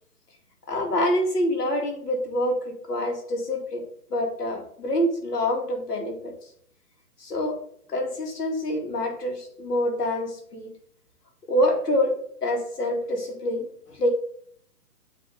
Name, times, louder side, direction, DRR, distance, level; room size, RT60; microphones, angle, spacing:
voice 1, 0.7-3.8 4.1-6.3 7.2-7.6 7.9-10.7 11.5-12.1 12.4-14.1, left 1 dB, 75° left, 2 dB, 2.4 m, -26 dB
8.4 x 3.5 x 3.8 m, 0.63 s
hypercardioid pair, 175°, 47 cm